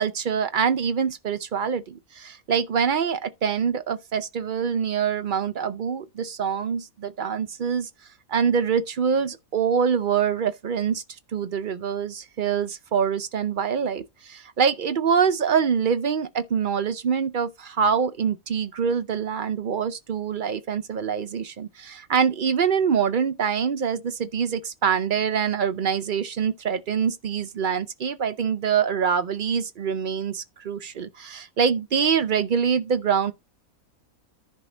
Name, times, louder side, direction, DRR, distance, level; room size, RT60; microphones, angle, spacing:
voice 1, 0.0-7.9 8.3-11.0 11.3-33.3, right 7 dB, 55° right, 0.6 m, -25 dB
10.5 x 5.6 x 3.8 m
omnidirectional pair, 1.5 m